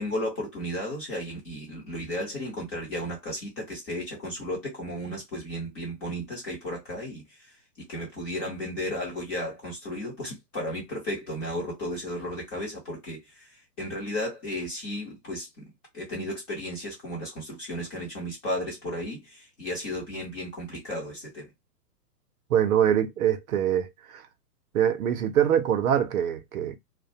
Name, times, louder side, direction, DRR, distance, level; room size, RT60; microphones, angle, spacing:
voice 1, 0.0-15.7 15.9-21.5, left 1 dB, 15° left, 0.5 m, -34 dB
voice 2, 22.5-24.2 24.7-26.8, right 9 dB, 60° right, 0.6 m, -24 dB
2.3 x 2.1 x 2.7 m
hypercardioid pair, 140°, 50 cm